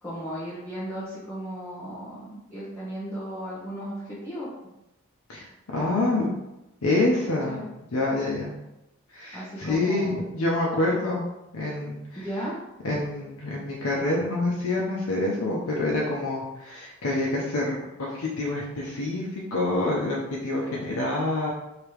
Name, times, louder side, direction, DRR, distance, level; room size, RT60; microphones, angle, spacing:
voice 1, 0.0-4.5 7.4-7.6 9.3-10.2 12.2-12.6, equal, 10° left, -11 dB, 1.0 m, -35 dB
voice 2, 5.7-6.3 6.8-7.6 7.9-8.5 9.1-11.2 11.5-12.3 12.8-21.5, left 2 dB, 85° left, -3 dB, 0.7 m, -27 dB
3.3 x 2.9 x 4.7 m, 0.94 s
head